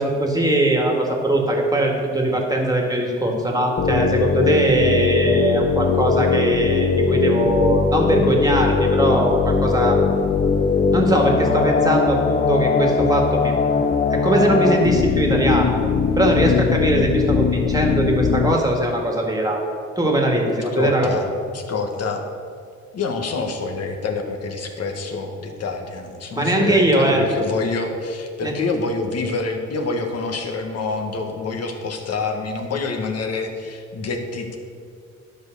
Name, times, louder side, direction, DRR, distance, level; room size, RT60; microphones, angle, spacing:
voice 1, 0.0-10.0 10.9-13.5 14.1-15.8 16.1-19.6 20.0-21.1 26.4-27.2 28.4-28.5, right 1 dB, 10° right, 0 dB, 1.9 m, -20 dB
sound 1, 3.8-18.6, left 5 dB, 30° left, 0.5 m, -20 dB
voice 2, 20.5-22.2 22.9-34.6, left 4 dB, 55° left, 4 dB, 1.4 m, -27 dB
10.5 x 5.4 x 6.6 m, 2.3 s
cardioid pair, 90°, 30 cm